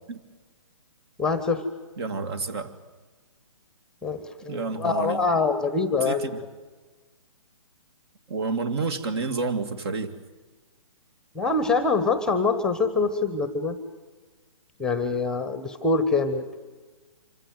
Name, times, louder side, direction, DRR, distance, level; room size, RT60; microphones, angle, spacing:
voice 1, 1.2-1.6 4.0-6.3 11.3-13.8 14.8-16.4, left 4 dB, 5° left, 12 dB, 1.1 m, -24 dB
voice 2, 2.0-2.7 4.5-5.2 6.0-6.4 8.3-10.1, right 4 dB, 50° right, 11 dB, 2.1 m, -29 dB
25.5 x 16.0 x 9.3 m, 1.3 s
hypercardioid pair, 150°, 18 cm